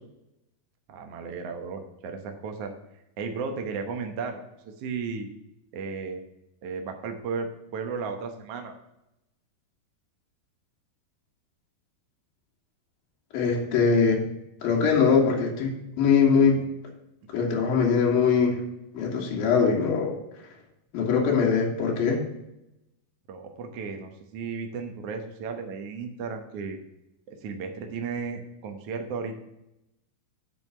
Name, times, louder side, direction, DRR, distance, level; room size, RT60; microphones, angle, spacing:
voice 1, 0.9-2.7 3.2-4.4 4.6-5.3 5.7-6.2 6.6-7.5 7.7-8.7 17.2-17.3 23.3-26.8 27.3-29.4, right 5 dB, 85° right, 5 dB, 1.3 m, -34 dB
voice 2, 13.3-14.2 14.6-16.6 17.3-18.6 18.9-20.1 20.9-22.2, left 5 dB, 70° left, -2 dB, 3.4 m, -22 dB
8.2 x 4.7 x 6.7 m, 0.86 s
omnidirectional pair, 4.4 m